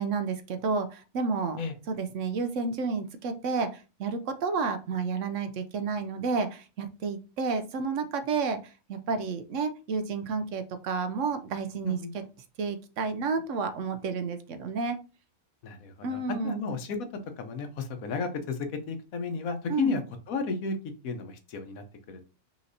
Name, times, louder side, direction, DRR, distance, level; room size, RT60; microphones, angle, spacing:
voice 1, 0.0-1.6 1.9-12.0 12.6-15.0 16.0-16.6 19.7-19.9, right 4 dB, 70° right, 9 dB, 0.9 m, -31 dB
voice 2, 15.6-17.0 17.4-20.0 20.3-20.8 21.0-22.3, left 4 dB, 85° left, 7 dB, 1.2 m, -33 dB
5.7 x 3.0 x 2.6 m, 0.32 s
omnidirectional pair, 1.4 m